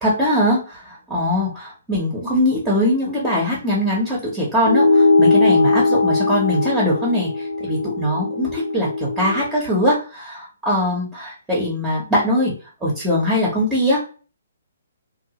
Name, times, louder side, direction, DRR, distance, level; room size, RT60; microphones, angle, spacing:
voice 1, 0.0-12.5 12.8-14.1, left 1 dB, 10° right, -5 dB, 0.8 m, -21 dB
sound 1, 4.6-9.4, left 3 dB, 60° left, 0.8 m, -19 dB
2.7 x 2.1 x 2.9 m, 0.37 s
figure-of-eight pair, 130°, 0 cm